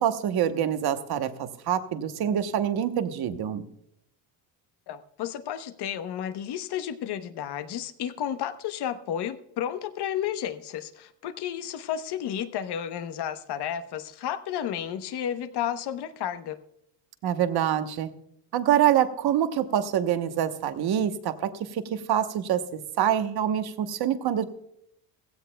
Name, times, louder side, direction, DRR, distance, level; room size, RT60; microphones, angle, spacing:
voice 1, 0.0-3.6 17.2-18.1 18.5-24.4, right 10 dB, 50° right, 9 dB, 1.1 m, -26 dB
voice 2, 4.9-16.6, left 10 dB, 55° left, 11 dB, 1.0 m, -32 dB
16.5 x 15.5 x 2.2 m, 0.75 s
cardioid pair, 140°, 49 cm